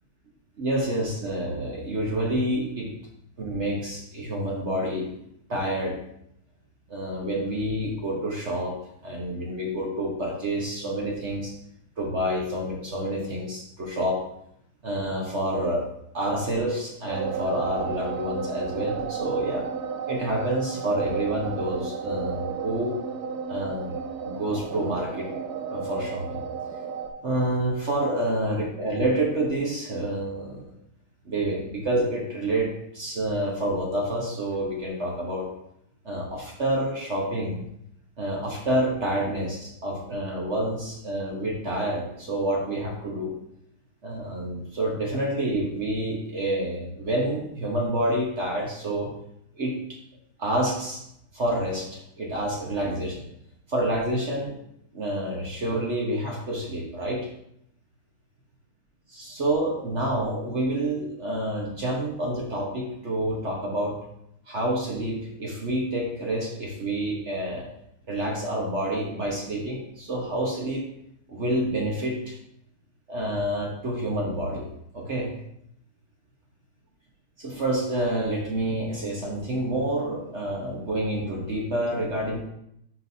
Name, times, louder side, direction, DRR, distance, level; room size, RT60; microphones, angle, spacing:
voice 1, 0.6-2.9 3.4-5.1 5.5-5.9 6.9-8.7 9.0-11.5 12.0-14.2 14.8-15.8 16.1-19.7 20.1-22.9 23.5-25.3 25.7-26.4 27.2-30.7 31.2-35.5 36.0-37.6 38.2-43.3 44.0-49.1 49.6-50.0 50.4-51.0 51.3-53.2 53.7-54.5 54.9-57.2 59.1-63.9 64.5-67.7 68.1-70.8 71.3-72.4 73.1-74.6 74.9-75.3 77.4-82.4, right 1 dB, 40° right, -2 dB, 1.1 m, -28 dB
sound 1, 17.1-27.1, right 6 dB, 75° right, 0.9 m, -33 dB
10.5 x 3.9 x 2.7 m, 0.75 s
omnidirectional pair, 2.3 m